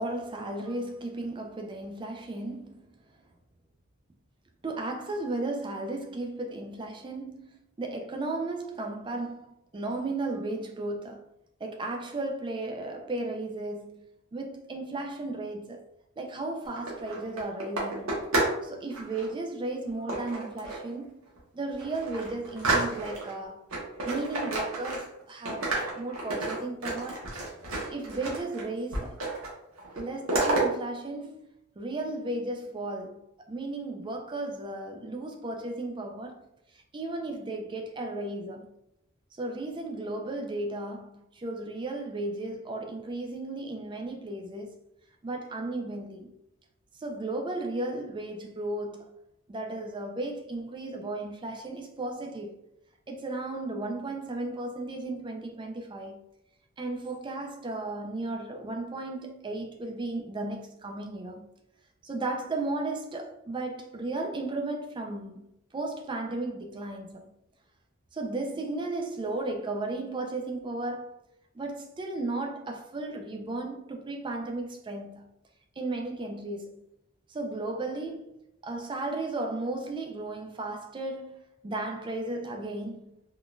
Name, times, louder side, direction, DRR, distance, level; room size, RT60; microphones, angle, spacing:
voice 1, 0.0-2.8 4.6-11.2 11.6-14.0 14.3-15.8 16.2-18.2 18.6-21.2 21.5-23.6 24.0-25.7 25.9-27.2 27.9-29.2 30.0-31.5 31.8-36.4 36.9-38.7 39.3-44.8 45.2-46.3 47.0-49.1 49.5-52.5 53.1-56.2 56.8-61.5 62.0-65.4 65.7-67.3 68.1-71.2 71.5-75.3 75.8-76.8 77.3-83.2, right 2 dB, 20° right, 0.3 m, -35 dB
sound 1, 16.6-18.6 18.9-19.3 20.1-20.9 21.4-21.5 21.8-23.3 23.7-25.2 25.5-28.6 28.9-29.5 29.8-30.6, right 2 dB, 70° right, 1.0 m, -30 dB
3.7 x 2.4 x 2.3 m
head